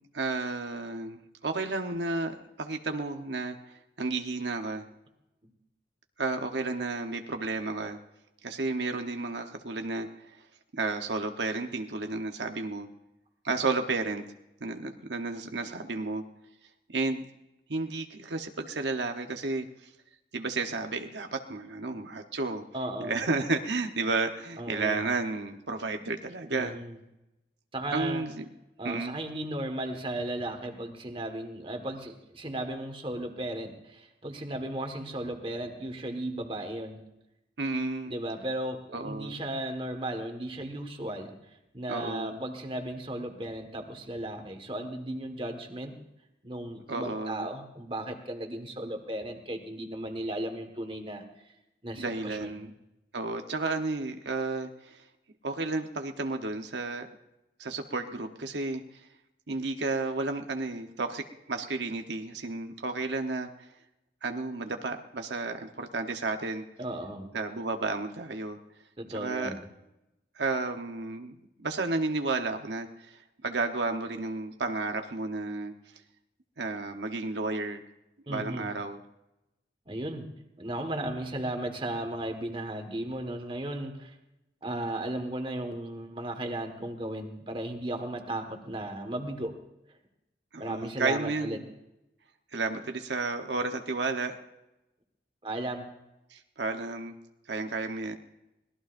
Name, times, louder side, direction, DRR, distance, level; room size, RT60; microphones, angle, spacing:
voice 1, 0.1-3.6 4.0-4.8 6.2-8.0 8.4-10.4 10.7-12.9 13.4-14.2 14.6-16.2 16.9-17.2 17.7-19.7 20.3-22.6 23.0-26.8 27.9-28.4 28.8-29.2 37.6-38.2 38.9-39.4 41.9-42.4 46.9-47.5 52.0-52.7 53.1-55.0 55.4-57.1 57.6-58.8 59.5-63.7 64.2-66.6 67.3-68.6 69.1-69.5 70.3-71.3 71.6-75.7 76.6-77.8 78.3-79.0 90.5-91.7 92.5-94.3 96.3-97.1 97.5-98.2, right 3 dB, 85° right, 5 dB, 1.1 m, -32 dB
voice 2, 22.7-23.1 24.6-25.1 26.5-27.0 27.7-28.3 28.8-37.0 38.1-41.3 41.7-46.0 46.4-51.5 51.8-52.6 66.8-67.3 69.0-69.6 78.3-78.7 79.9-80.3 80.6-84.1 84.6-89.5 90.6-91.6 95.4-95.9, right 1 dB, 30° right, 5 dB, 1.6 m, -35 dB
24.5 x 19.0 x 2.6 m, 0.90 s
head